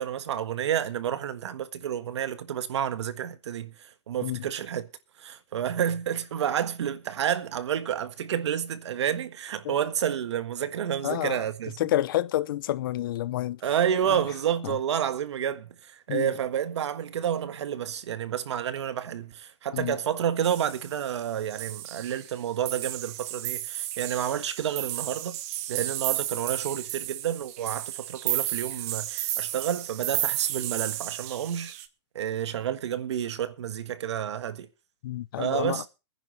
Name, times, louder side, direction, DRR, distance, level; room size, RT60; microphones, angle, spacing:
voice 1, 0.0-4.9 5.2-11.9 13.6-25.4 25.7-31.7 32.1-34.7 35.4-35.9, right 9 dB, 85° right, 1.5 m, -30 dB
voice 2, 11.0-11.4 11.8-13.6 14.0-14.2 14.6-14.7 16.1-16.3 19.7-20.0 35.0-35.8, left 14 dB, 50° left, 0.7 m, -29 dB
sound 1, 20.4-21.2 21.5-22.4 22.7-31.9, right 14 dB, 35° right, 0.9 m, -33 dB
23.5 x 10.0 x 3.2 m
supercardioid pair, 170°, 14 cm